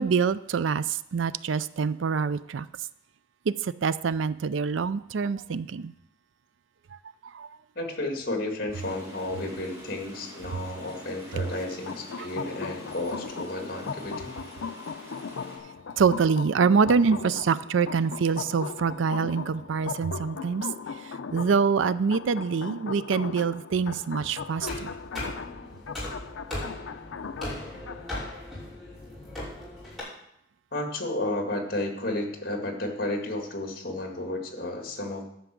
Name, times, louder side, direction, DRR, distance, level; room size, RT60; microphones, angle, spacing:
voice 1, 0.0-2.7 3.5-5.9 7.3-7.5 12.2-12.3 16.0-20.7 21.0-24.9, right 5 dB, 80° right, 16 dB, 0.4 m, -25 dB
voice 2, 7.8-14.3 30.7-35.2, left 2 dB, 50° left, 3 dB, 2.1 m, -32 dB
sound 1, 8.7-15.6, left 1 dB, 15° right, 5.1 m, -46 dB
sound 2, 11.4-28.3, left 5 dB, 80° left, 0.5 m, -38 dB
sound 3, 24.6-30.0, left 1 dB, ahead, 5.8 m, -38 dB
11.5 x 6.0 x 7.5 m, 0.77 s
head